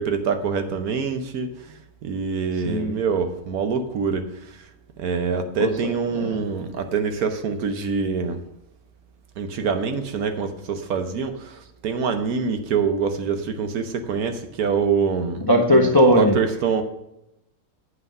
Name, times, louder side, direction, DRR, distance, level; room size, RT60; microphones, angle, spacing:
voice 1, 0.0-4.7 5.0-8.4 9.4-15.5 16.1-16.8, right 5 dB, 65° right, 7 dB, 1.2 m, -25 dB
voice 2, 2.7-3.0 5.6-6.5 15.4-16.3, equal, 30° left, 2 dB, 0.4 m, -19 dB
8.1 x 5.6 x 5.3 m, 0.85 s
omnidirectional pair, 1.8 m